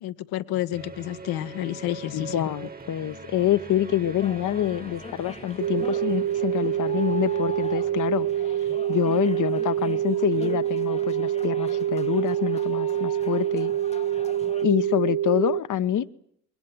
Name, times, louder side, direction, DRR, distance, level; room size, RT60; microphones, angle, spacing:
voice 1, 0.0-2.4, left 14 dB, 70° left, 1.2 m, -30 dB
sound 1, 0.7-12.1, right 3 dB, 25° right, 1.4 m, -44 dB
voice 2, 2.1-8.3 8.9-13.7 14.6-16.1, left 11 dB, 50° left, 1.0 m, -26 dB
sound 2, 4.2-14.7, left 3 dB, 15° left, 0.9 m, -42 dB
sound 3, 5.6-15.6, right 11 dB, 55° right, 1.0 m, -26 dB
21.5 x 19.0 x 9.4 m
hypercardioid pair, 45°, 38 cm